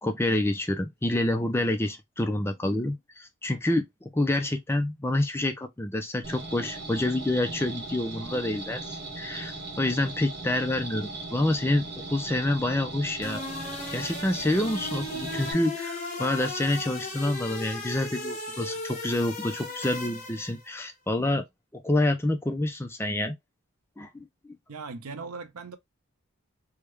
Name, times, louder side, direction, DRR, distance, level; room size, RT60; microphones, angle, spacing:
voice 1, 0.0-13.4 13.9-21.4 21.7-23.4 24.0-24.3, left 1 dB, 10° left, 0.4 m, -28 dB
sound 1, 6.2-15.5, right 2 dB, 50° right, 1.1 m, -38 dB
sound 2, 13.2-20.6, left 2 dB, 30° left, 1.3 m, -36 dB
voice 2, 24.7-25.8, right 4 dB, 90° right, 0.6 m, -39 dB
3.5 x 2.3 x 3.1 m
head